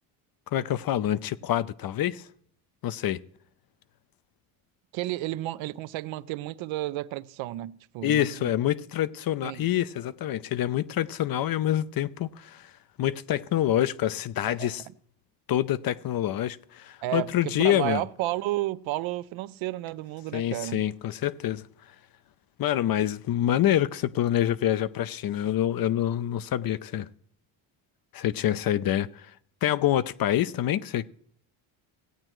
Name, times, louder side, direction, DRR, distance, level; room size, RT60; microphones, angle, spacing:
voice 1, 0.5-2.3 2.8-3.2 8.0-12.7 13.0-14.8 15.5-18.0 20.3-21.6 22.6-27.1 28.1-29.3 29.6-31.1, left 12 dB, 50° left, 0.6 m, -26 dB
voice 2, 4.9-8.5 9.4-9.7 14.4-14.8 17.0-20.9, right 16 dB, 75° right, 0.6 m, -32 dB
17.0 x 8.8 x 3.1 m
cardioid pair, 85°, 48 cm